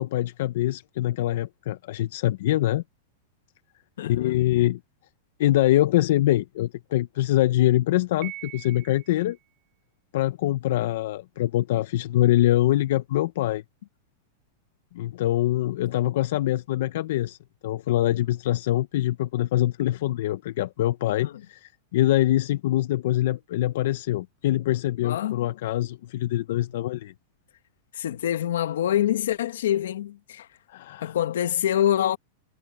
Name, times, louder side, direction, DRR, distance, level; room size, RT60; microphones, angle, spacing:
voice 1, 0.0-2.8 4.0-4.8 5.4-9.4 10.1-13.6 14.9-17.4 17.6-27.1 30.7-31.1, left 14 dB, 65° left, 0.7 m, -24 dB
voice 2, 4.0-4.4 21.2-21.4 25.0-25.5 26.7-26.8 27.9-30.5 31.0-32.2, left 11 dB, 85° left, 1.5 m, -26 dB
Piano, 8.2-9.3, right 17 dB, 35° right, 4.2 m, -41 dB
supercardioid pair, 155°, 0 cm